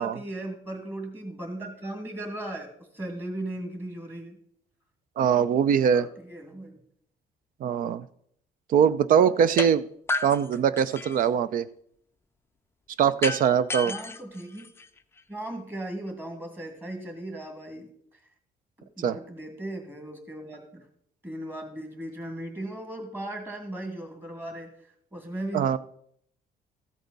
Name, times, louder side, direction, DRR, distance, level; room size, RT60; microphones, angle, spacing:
voice 1, 0.0-4.4 5.9-6.8 13.8-14.7 15.3-18.2 18.8-20.9 21.2-25.8, right 1 dB, 15° right, 4 dB, 2.2 m, -37 dB
voice 2, 5.2-6.1 7.6-8.1 8.7-9.8 10.2-11.7 13.0-13.9 19.0-19.2 25.5-25.8, right 8 dB, 55° right, 16 dB, 0.6 m, -22 dB
sound 1, 9.6-9.7 10.1-11.3 13.2-15.2, left 3 dB, 15° left, 0.4 m, -32 dB
14.0 x 8.0 x 4.1 m, 0.68 s
cardioid pair, 150°, 17 cm